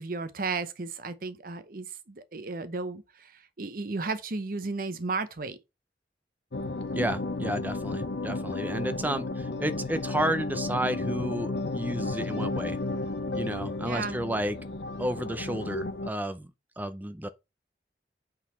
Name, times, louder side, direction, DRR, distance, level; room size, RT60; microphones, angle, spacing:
voice 1, 0.0-5.6 13.8-14.2, right 3 dB, 50° right, 0.8 m, -34 dB
sound 1, 6.5-16.1, left 2 dB, 75° left, 0.7 m, -33 dB
voice 2, 6.9-12.8 13.3-14.6 15.0-16.5 16.8-17.3, right 1 dB, 10° right, 0.6 m, -32 dB
8.4 x 4.0 x 4.3 m
head